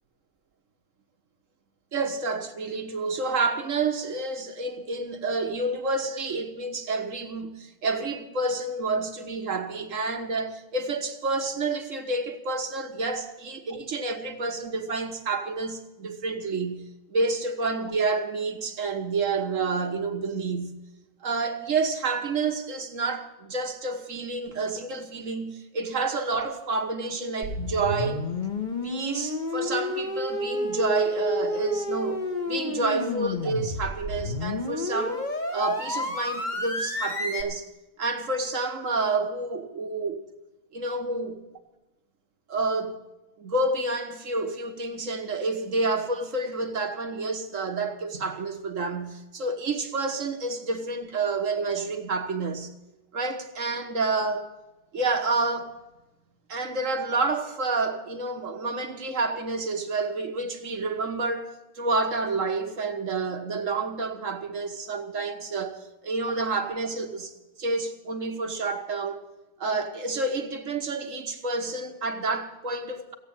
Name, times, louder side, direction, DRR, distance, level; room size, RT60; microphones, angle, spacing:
voice 1, 1.9-20.8 21.2-28.3 28.8-35.2 35.5-37.7 38.0-40.2 40.7-41.4 42.5-43.0 43.4-52.7 53.1-54.5 54.9-55.8 56.5-67.3 67.6-69.2 69.6-73.1, right 3 dB, 50° right, 1.6 m, -29 dB
sound 1, 27.4-37.4, left 2 dB, 30° left, 1.6 m, -30 dB
16.5 x 8.7 x 8.8 m
omnidirectional pair, 1.8 m